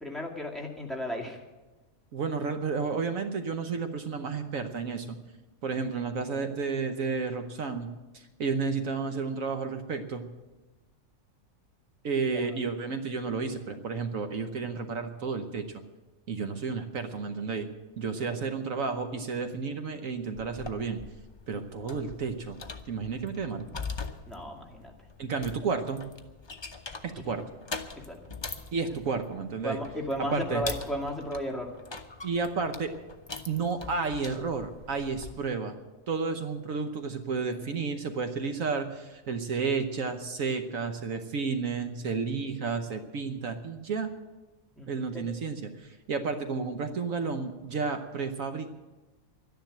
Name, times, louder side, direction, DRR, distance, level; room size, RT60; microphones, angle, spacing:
voice 1, 0.0-1.4 12.2-12.4 24.3-24.9 28.0-28.2 29.6-31.7 44.8-45.2, equal, ahead, 0 dB, 2.1 m, -34 dB
voice 2, 2.1-5.2 5.6-7.9 8.1-10.2 12.0-15.7 16.3-17.7 18.0-21.0 21.5-22.6 22.9-23.7 25.2-26.0 27.0-27.4 28.7-29.8 30.2-30.6 32.2-32.9 33.5-35.8 36.1-44.1 44.9-48.7, right 5 dB, 70° right, 7 dB, 1.3 m, -31 dB
sound 1, 20.4-35.4, left 4 dB, 25° left, 0.7 m, -43 dB
12.5 x 10.5 x 9.0 m, 1.2 s
omnidirectional pair, 1.5 m